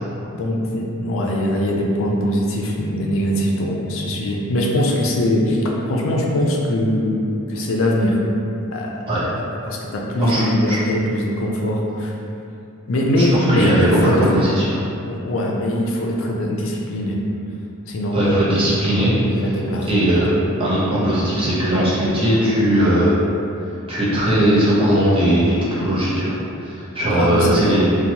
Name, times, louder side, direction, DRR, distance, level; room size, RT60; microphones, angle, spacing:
voice 1, 0.3-8.2 8.7-8.9 9.7-12.1 12.9-14.3 15.1-17.2 17.9-18.5 19.3-19.9 27.1-27.7, left 1 dB, 60° left, -1 dB, 0.4 m, -21 dB
voice 2, 10.2-10.8 13.2-14.9 18.1-19.5 19.9-20.3 20.6-23.2 23.9-27.9, right 1 dB, 25° right, -9 dB, 0.6 m, -18 dB
2.9 x 2.1 x 2.7 m, 2.7 s
head